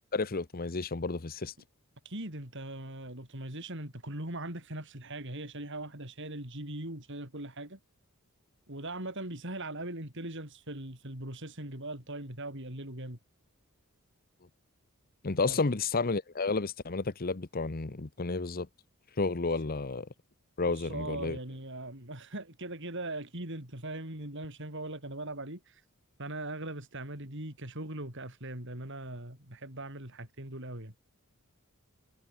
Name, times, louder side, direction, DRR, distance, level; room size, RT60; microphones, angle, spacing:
voice 1, 0.1-1.5 15.2-18.7 19.2-20.1 20.6-21.4, left 3 dB, 45° left, 0.9 m, -31 dB
voice 2, 2.1-7.8 8.7-13.2 15.5-15.6 20.7-25.8 26.2-30.9, right 1 dB, 55° right, 7.0 m, -40 dB
head